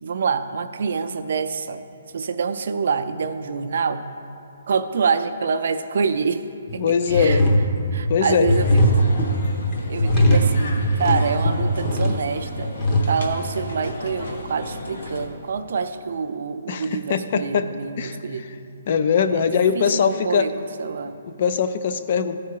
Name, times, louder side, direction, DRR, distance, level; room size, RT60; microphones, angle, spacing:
voice 1, 0.0-1.8 2.1-4.0 4.7-6.4 6.7-7.4 7.9-8.6 8.9-9.1 9.9-12.7 13.1-18.5 19.3-19.5 19.7-21.2, right 5 dB, 55° right, 10 dB, 0.4 m, -26 dB
sound 1, 6.7-6.8 7.1-13.0, equal, 20° left, 0.8 m, -20 dB
voice 2, 6.8-7.5 8.1-8.5 16.7-17.7 18.0-18.2 18.9-20.5 21.2-22.4, left 6 dB, 40° left, 10 dB, 0.4 m, -21 dB
sound 2, 8.5-15.3, left 1 dB, 65° left, 1.1 m, -35 dB
14.0 x 4.7 x 4.6 m, 2.7 s
hypercardioid pair, 170°, 0 cm